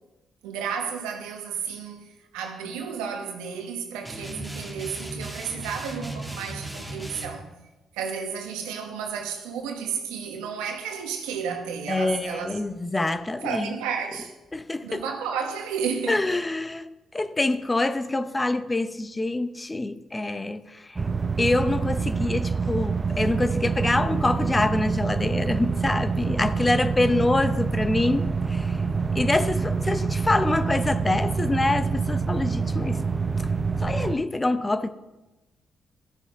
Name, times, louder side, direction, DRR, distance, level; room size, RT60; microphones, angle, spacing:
voice 1, 0.4-2.1 2.3-7.5 7.9-12.6 13.4-14.3 14.8-16.2, right 6 dB, 90° right, 1.1 m, -32 dB
sound 1, 4.0-7.3, right 1 dB, 10° right, 2.1 m, -36 dB
voice 2, 11.9-13.7 14.5-15.0 16.1-16.9 17.1-21.0 21.4-28.8 29.1-33.0 33.8-34.9, left 2 dB, 25° left, 0.7 m, -25 dB
sound 2, 21.0-34.1, right 5 dB, 35° right, 0.6 m, -26 dB
13.5 x 6.3 x 3.6 m
supercardioid pair, 50°, 0 cm